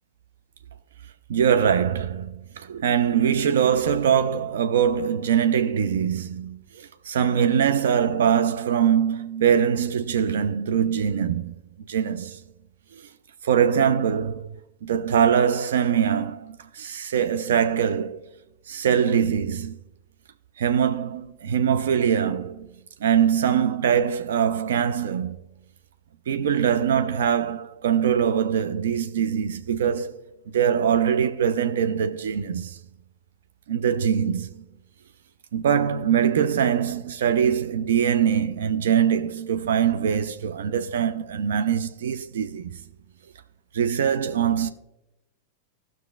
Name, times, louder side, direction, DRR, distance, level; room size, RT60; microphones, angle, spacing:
voice 1, 1.3-11.5 11.9-12.4 13.4-14.5 14.8-18.2 18.7-19.8 20.6-22.7 23.0-25.4 26.3-30.2 30.5-32.8 33.7-34.6 35.5-42.7 43.7-44.7, right 8 dB, 60° right, 0.5 m, -23 dB
18.0 x 6.0 x 2.3 m
figure-of-eight pair, 90°, 0 cm